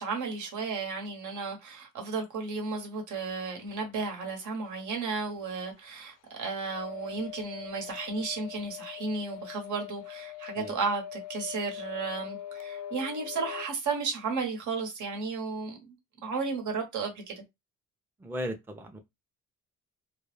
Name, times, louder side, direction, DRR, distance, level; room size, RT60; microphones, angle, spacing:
voice 1, 0.0-16.0 16.2-17.4, right 4 dB, 75° right, 1.0 m, -34 dB
sound 1, 6.7-13.7, left 12 dB, 85° left, 0.5 m, -42 dB
voice 2, 18.2-19.0, equal, 5° right, 0.4 m, -36 dB
2.2 x 2.0 x 3.2 m
cardioid pair, 90°, 30 cm